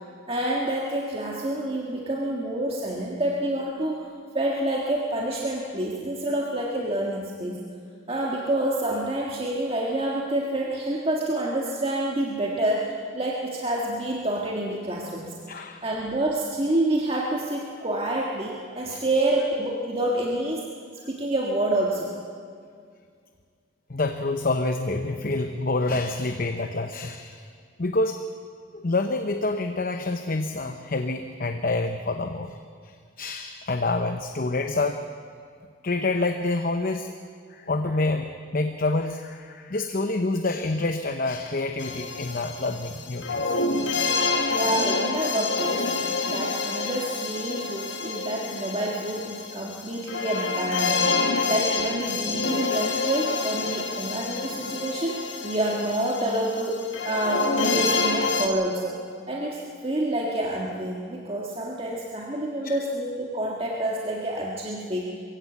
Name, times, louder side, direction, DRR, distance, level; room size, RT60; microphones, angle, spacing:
voice 1, 0.3-4.1 4.3-7.7 8.1-20.7 21.1-22.1 44.5-45.9 46.2-51.0 51.5-59.0 59.3-65.2, right 1 dB, 30° right, -2 dB, 1.8 m, -28 dB
voice 2, 15.5-15.8 18.9-19.0 23.9-27.5 27.8-28.2 28.7-32.6 32.8-35.1 35.8-37.1 37.5-43.6 62.6-62.7, left 2 dB, 45° left, 6 dB, 0.8 m, -27 dB
sound 1, 41.8-58.5, left 4 dB, 65° left, 1.6 m, -27 dB
22.5 x 15.5 x 8.1 m, 2.2 s
head